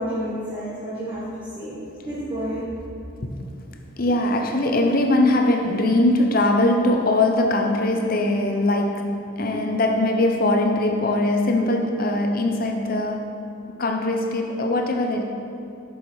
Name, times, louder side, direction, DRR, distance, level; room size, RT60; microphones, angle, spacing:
voice 1, 0.0-2.7, equal, 25° right, -9 dB, 1.2 m, -30 dB
voice 2, 4.0-13.5 13.8-15.2, left 2 dB, 45° left, 4 dB, 0.7 m, -21 dB
7.2 x 6.4 x 4.7 m, 2.6 s
head